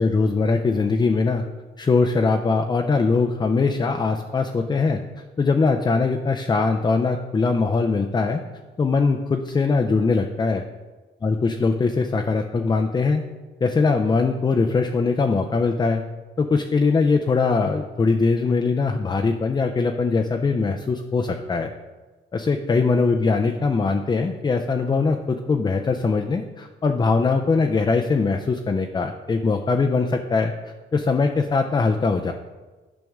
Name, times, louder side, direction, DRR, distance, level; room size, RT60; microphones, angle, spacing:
voice 1, 0.0-1.4 1.8-5.0 5.4-8.4 8.8-10.6 11.2-13.2 13.6-16.0 16.4-21.7 22.3-30.5 30.9-32.3, left 4 dB, 20° left, 4 dB, 0.4 m, -21 dB
9.2 x 5.2 x 3.5 m, 1.3 s
cardioid pair, 90°, 20 cm